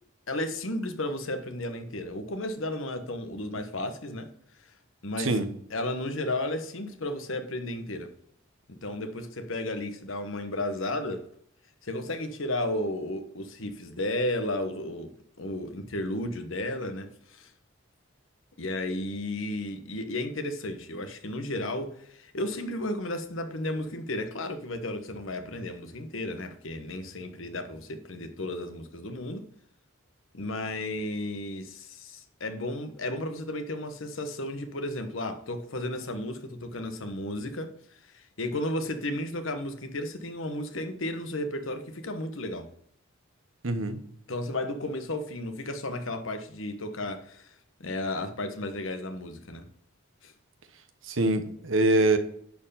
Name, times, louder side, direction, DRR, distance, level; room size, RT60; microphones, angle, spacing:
voice 1, 0.3-4.3 5.0-5.4 5.7-8.1 8.7-11.2 11.8-15.1 15.4-17.5 18.6-29.5 30.3-37.7 38.1-42.7 44.3-47.5 47.8-49.7 50.2-50.3, left 1 dB, 75° left, 1.2 m, -33 dB
voice 2, 5.2-5.5 43.6-44.0 51.1-52.2, right 2 dB, 75° right, 1.1 m, -24 dB
10.5 x 4.6 x 5.6 m
head